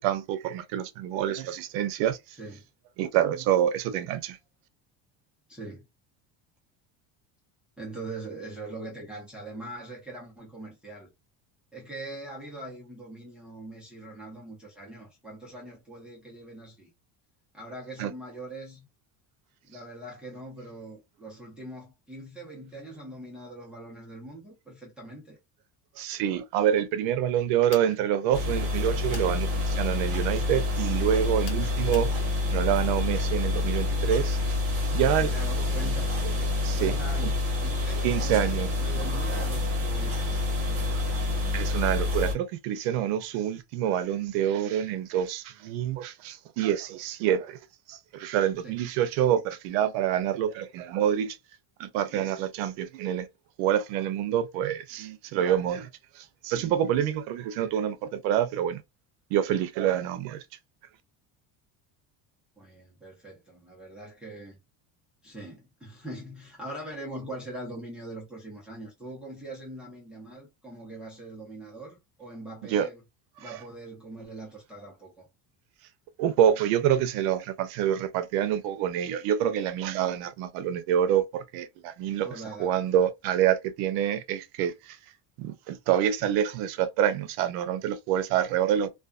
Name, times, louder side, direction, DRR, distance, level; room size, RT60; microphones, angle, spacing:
voice 1, 0.0-2.2 3.0-4.4 18.0-18.1 26.0-32.1 32.5-34.6 34.9-35.3 36.6-37.0 38.0-38.7 41.5-47.6 47.9-51.4 51.8-53.3 53.6-55.9 56.2-58.8 59.3-60.4 72.7-72.9 73.5-73.6 76.2-82.3 82.6-85.0 85.4-88.9, right 10 dB, 90° right, 0.6 m, -27 dB
voice 2, 5.5-5.8 7.8-11.1 11.7-16.9 17.5-18.9 19.7-25.4 35.2-40.4 48.6-48.8 62.6-64.6 65.2-73.0 73.4-75.3 82.2-83.0, right 1 dB, ahead, 0.8 m, -42 dB
sound 1, 27.7-28.0 29.1-29.3 31.4-32.1, left 5 dB, 30° left, 0.5 m, -43 dB
sound 2, 28.3-42.3, left 2 dB, 30° right, 1.1 m, -27 dB
2.4 x 2.3 x 2.3 m
cardioid pair, 170°, 42 cm